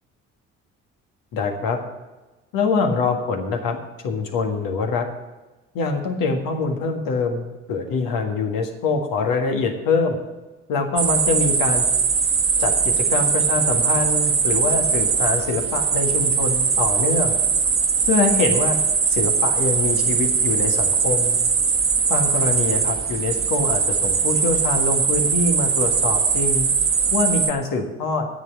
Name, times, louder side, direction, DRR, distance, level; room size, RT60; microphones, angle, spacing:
voice 1, 1.3-1.8 2.5-3.8 4.0-5.1 5.7-10.2 10.7-11.9 12.6-17.3 18.1-18.8 19.1-21.4 22.1-26.7 27.1-28.3, left 4 dB, 70° left, 3 dB, 1.8 m, -24 dB
sound 1, 11.0-27.5, right 5 dB, 35° right, 1.2 m, -20 dB
9.7 x 7.8 x 8.3 m, 1.1 s
hypercardioid pair, 50°, 35 cm